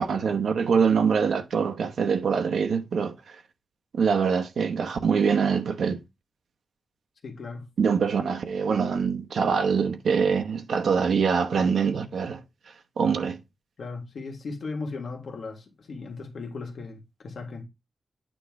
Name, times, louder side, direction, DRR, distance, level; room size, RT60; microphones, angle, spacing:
voice 1, 0.0-3.4 3.9-6.0 7.8-12.4 13.0-13.4, right 6 dB, 85° right, 1.0 m, -24 dB
voice 2, 7.2-7.7 13.8-17.7, left 3 dB, 65° left, 1.7 m, -37 dB
9.1 x 3.2 x 4.7 m
wide cardioid pair, 180°, 0 cm